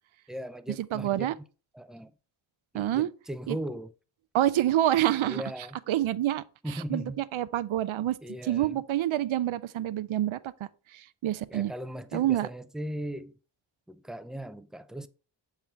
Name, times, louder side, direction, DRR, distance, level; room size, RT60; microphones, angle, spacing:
voice 1, 0.3-1.3 1.7-2.1 2.7-3.9 5.2-5.8 6.6-7.2 8.2-8.8 11.5-13.3 13.9-15.1, right 1 dB, ahead, 0.4 m, -38 dB
voice 2, 0.9-1.3 2.7-3.1 3.5-3.6 4.3-5.4 5.9-8.2 8.4-10.4 10.9-11.7 12.1-12.5, right 13 dB, 80° right, 0.5 m, -27 dB
7.4 x 3.7 x 4.4 m
wide cardioid pair, 60°, 47 cm